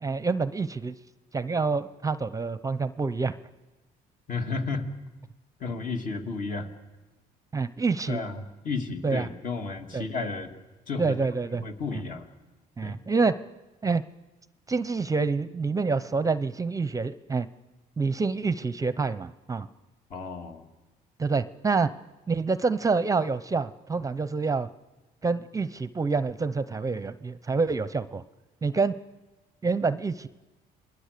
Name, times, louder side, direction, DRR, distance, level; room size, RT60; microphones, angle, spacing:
voice 1, 0.0-0.9 1.3-3.3 7.5-8.2 9.0-9.3 9.9-10.0 11.0-11.6 11.9-12.0 12.8-13.4 13.8-14.0 14.7-17.5 18.0-19.7 21.2-21.9 22.3-24.7 25.2-28.2 28.6-28.9 29.6-30.3, right 4 dB, 20° right, 14 dB, 0.7 m, -27 dB
voice 2, 4.3-4.9 5.6-6.7 8.1-10.5 10.9-11.2 11.6-12.3 12.8-13.0 20.1-20.7, left 4 dB, 50° left, 4 dB, 2.5 m, -32 dB
28.0 x 21.0 x 6.8 m, 1.1 s
cardioid pair, 110°, 17 cm